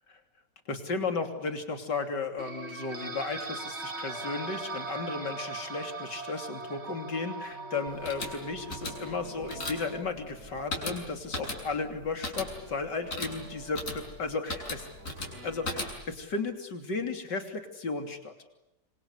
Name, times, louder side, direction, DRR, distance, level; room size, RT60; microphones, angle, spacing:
voice 1, 0.7-14.9 15.4-18.5, left 4 dB, 85° left, 6 dB, 3.7 m, -34 dB
sound 1, 2.4-10.0, right 3 dB, 40° right, 2.1 m, -40 dB
sound 2, 7.9-16.2, left 2 dB, 50° left, 7.4 m, -38 dB
sound 3, 8.8-15.8, right 3 dB, 75° right, 3.9 m, -51 dB
26.5 x 26.0 x 8.2 m, 0.92 s
omnidirectional pair, 1.8 m